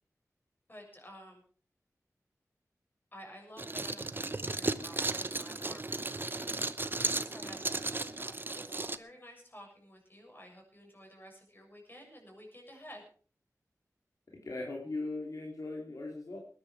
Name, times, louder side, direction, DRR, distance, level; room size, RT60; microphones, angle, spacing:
voice 1, 0.7-1.4 3.1-13.0, equal, 35° left, 1 dB, 7.3 m, -52 dB
sound 1, 3.6-9.0, right 2 dB, 35° right, 0.8 m, -35 dB
voice 2, 14.4-16.4, left 2 dB, 70° left, -1 dB, 3.1 m, -38 dB
20.0 x 10.5 x 4.8 m, 0.43 s
wide cardioid pair, 80°, 6 cm